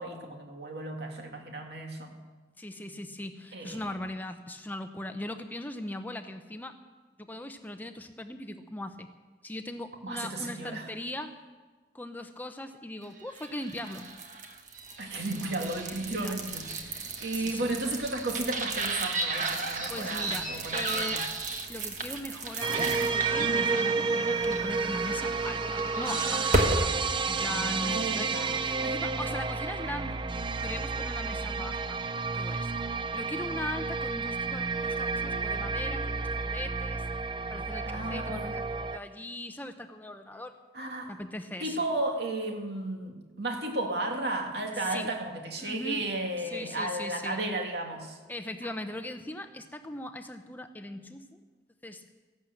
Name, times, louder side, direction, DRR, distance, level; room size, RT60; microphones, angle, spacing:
voice 1, 0.0-2.1 3.5-3.9 10.0-10.9 15.0-21.2 27.8-28.5 37.8-38.5 40.7-41.1 41.6-48.2 48.6-48.7, right 2 dB, 65° right, 2 dB, 2.4 m, -34 dB
voice 2, 2.6-6.8 7.2-9.1 9.4-11.3 11.9-14.1 15.4-16.4 17.3-17.7 19.9-21.2 21.7-26.9 27.3-28.3 28.6-30.2 30.6-32.0 32.3-32.7 33.1-37.0 37.5-40.5 41.1-41.9 44.8-45.1 45.6-46.1 46.4-47.4 48.3-51.4 51.8-52.0, left 1 dB, 10° left, 7 dB, 0.7 m, -39 dB
sound 1, 13.3-26.9, right 2 dB, 45° right, 1.4 m, -33 dB
sound 2, 22.6-39.0, right 4 dB, 30° right, 0.5 m, -31 dB
15.0 x 12.0 x 7.7 m, 1.3 s
head